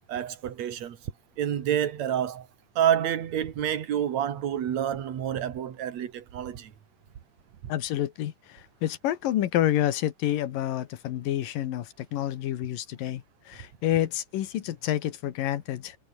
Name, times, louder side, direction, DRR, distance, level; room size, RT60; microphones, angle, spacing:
voice 1, 0.1-1.0 1.4-2.5 2.8-6.7 7.6-7.7, right 10 dB, 60° right, 3.0 m, -28 dB
voice 2, 7.7-16.0, left 12 dB, 90° left, 3.1 m, -29 dB
omnidirectional pair, 3.8 m